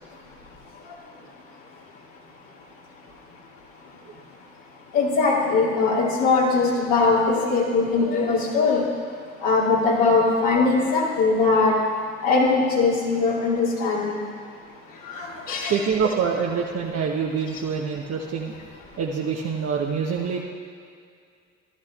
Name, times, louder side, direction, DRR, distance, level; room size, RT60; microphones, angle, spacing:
voice 1, 4.9-8.8 9.4-11.7 12.2-14.2 15.1-16.1, left 4 dB, 60° left, -4 dB, 2.5 m, -21 dB
voice 2, 15.7-18.5 19.0-20.4, right 6 dB, 45° right, 0 dB, 1.0 m, -25 dB
15.0 x 13.0 x 2.4 m, 2.2 s
figure-of-eight pair, 50°, 37 cm